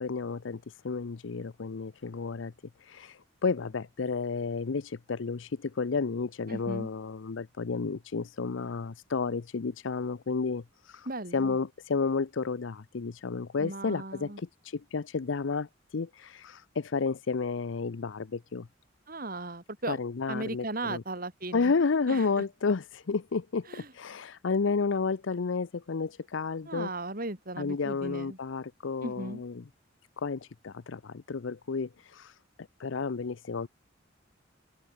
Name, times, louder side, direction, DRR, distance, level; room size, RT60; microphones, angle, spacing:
voice 1, 0.0-2.5 2.8-11.1 11.3-18.7 19.9-21.0 21.5-26.9 27.6-29.6 30.2-32.4 32.8-33.7, left 4 dB, 75° left, 0.6 m, -31 dB
voice 2, 6.5-6.9 11.1-11.6 13.6-14.4 19.1-20.0 20.3-21.7 22.1-22.3 23.7-23.9 26.7-28.4 29.0-29.4, right 2 dB, 50° right, 5.3 m, -37 dB
open air
head